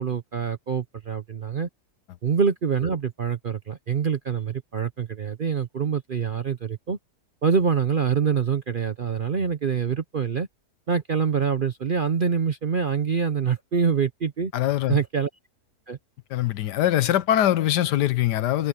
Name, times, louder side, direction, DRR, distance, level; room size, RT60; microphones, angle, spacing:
voice 1, 0.0-1.7 2.2-7.0 7.4-10.5 10.9-14.5 14.9-15.3 15.9-16.0, right 6 dB, 50° right, 0.6 m, -25 dB
voice 2, 14.5-15.0 16.3-18.7, left 12 dB, 80° left, 1.4 m, -22 dB
omnidirectional pair, 1.8 m